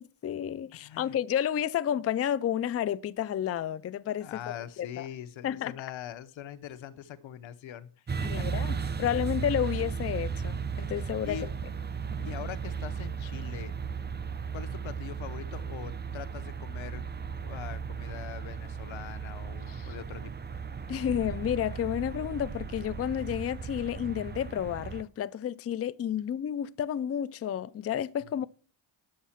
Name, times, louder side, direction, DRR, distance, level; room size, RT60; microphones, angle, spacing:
voice 1, 0.0-4.3 4.8-5.0 5.4-5.7 8.2-11.5 19.7-19.9 20.9-28.5, left 10 dB, 35° left, 0.4 m, -31 dB
voice 2, 0.7-1.1 4.2-8.6 9.0-9.3 11.0-11.5 12.1-13.7 14.5-17.0 17.4-20.3, left 10 dB, 90° left, 0.9 m, -43 dB
sound 1, 8.1-25.0, right 6 dB, 25° right, 0.5 m, -36 dB
10.0 x 7.2 x 5.7 m
cardioid pair, 115°, 45 cm